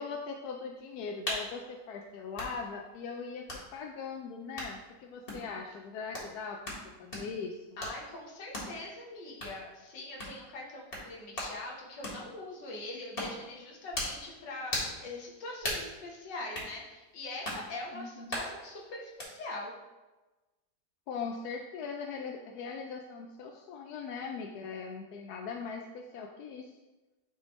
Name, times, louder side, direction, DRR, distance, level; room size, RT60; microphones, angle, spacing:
voice 1, 0.0-7.7 17.9-18.4 21.1-26.7, left 5 dB, 75° left, 2 dB, 1.0 m, -40 dB
sound 1, 1.3-1.5 2.3-2.5 3.5-3.6 4.6-4.7 5.3-5.5 6.1-6.3 6.6-6.8 7.1-7.3 7.8-8.0 8.5-8.7 9.4-9.6 10.2-10.4 10.9-11.1 11.3-11.5 12.0-12.2 13.2-13.4 13.9-14.2 14.7-15.0 15.6-15.9 16.5-16.7 17.4-17.6 18.3-18.5 19.2-19.3, left 1 dB, 35° left, 1.7 m, -36 dB
voice 2, 7.8-14.7 15.0-19.7, left 2 dB, 90° left, -2 dB, 1.8 m, -42 dB
10.5 x 3.5 x 3.0 m, 1.1 s
omnidirectional pair, 1.8 m